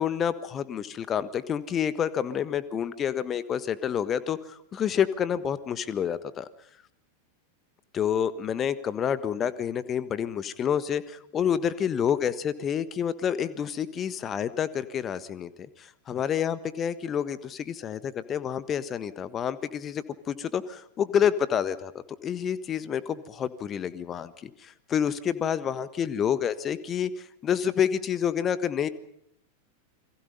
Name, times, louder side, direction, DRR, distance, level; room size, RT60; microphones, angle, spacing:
voice 1, 0.0-6.5 7.9-15.5 15.8-21.9 22.2-28.9, left 8 dB, 25° left, 15 dB, 1.4 m, -28 dB
29.5 x 22.5 x 5.4 m, 0.74 s
figure-of-eight pair, 90°, 0 cm